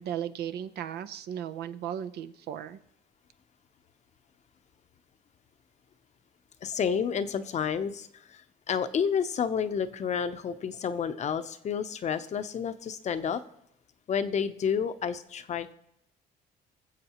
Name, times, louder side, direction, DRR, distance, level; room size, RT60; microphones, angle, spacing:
voice 1, 0.0-2.8, right 9 dB, 70° right, 11 dB, 0.7 m, -36 dB
voice 2, 6.6-8.4 8.7-13.4 14.1-15.7, left 7 dB, 45° left, 11 dB, 0.7 m, -30 dB
23.0 x 7.6 x 3.0 m, 0.82 s
cardioid pair, 110°, 17 cm